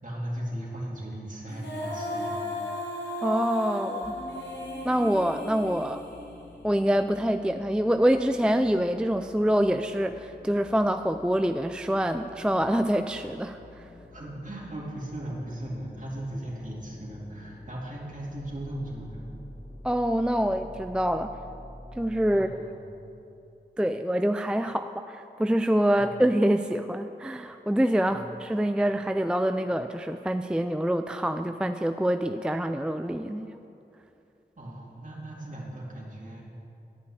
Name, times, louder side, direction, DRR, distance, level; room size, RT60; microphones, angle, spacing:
voice 1, 0.0-2.4 14.1-19.3 22.3-23.0 25.9-26.1 28.0-28.2 34.6-36.4, right 1 dB, 45° right, -4 dB, 2.8 m, -37 dB
Female singing, 1.5-6.7, left 1 dB, 75° left, 2.0 m, -35 dB
voice 2, 3.2-4.2 4.8-6.0 6.6-13.9 19.8-21.3 22.0-22.5 23.8-33.6, equal, 5° right, 8 dB, 0.4 m, -26 dB
sound 1, 4.0-22.4, left 2 dB, 40° left, 1.2 m, -48 dB
11.0 x 5.6 x 8.6 m, 2.7 s
cardioid pair, 45°, 18 cm